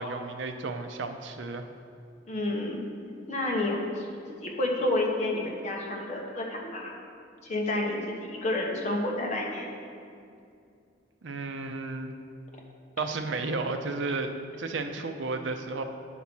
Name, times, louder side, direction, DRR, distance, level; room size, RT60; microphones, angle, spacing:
voice 1, 0.0-1.6 11.2-12.1 13.0-15.8, right 3 dB, 75° right, 6 dB, 0.6 m, -33 dB
voice 2, 2.3-2.8 3.3-4.1 4.4-6.9 7.4-9.7, left 2 dB, 35° left, -1 dB, 1.2 m, -29 dB
9.5 x 4.2 x 6.1 m, 2.4 s
head